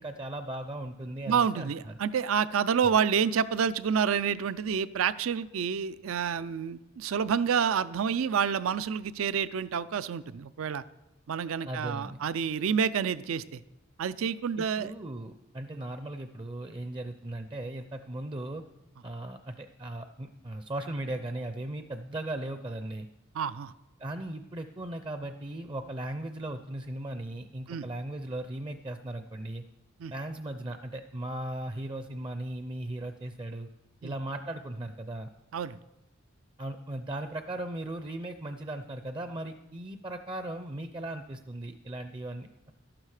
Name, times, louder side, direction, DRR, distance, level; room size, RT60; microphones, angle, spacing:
voice 1, 0.0-1.9 11.7-12.2 14.6-18.6 19.0-23.1 24.0-29.6 30.1-33.7 34.0-35.3 36.6-42.7, right 1 dB, 25° right, 8 dB, 0.5 m, -37 dB
voice 2, 1.3-10.8 11.3-13.6 14.0-14.9 23.3-23.7 27.7-27.8 30.0-30.1 34.0-34.1 35.5-35.8, right 7 dB, 80° right, 16 dB, 0.4 m, -28 dB
12.5 x 12.0 x 4.9 m, 0.99 s
head